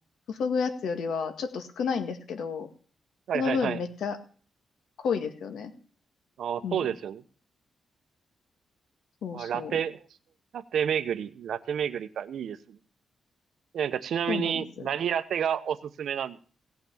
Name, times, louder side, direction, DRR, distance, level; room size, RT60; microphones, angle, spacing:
voice 1, 0.3-2.7 3.3-4.2 5.0-5.7 6.6-6.9 9.2-9.8 14.3-14.6, left 5 dB, 80° left, 8 dB, 1.9 m, -30 dB
voice 2, 3.3-3.8 6.4-7.2 9.3-10.1 10.5-12.8 13.7-16.4, right 8 dB, 75° right, 12 dB, 0.9 m, -30 dB
17.0 x 6.0 x 8.6 m, 0.42 s
cardioid pair, 120°, 0 cm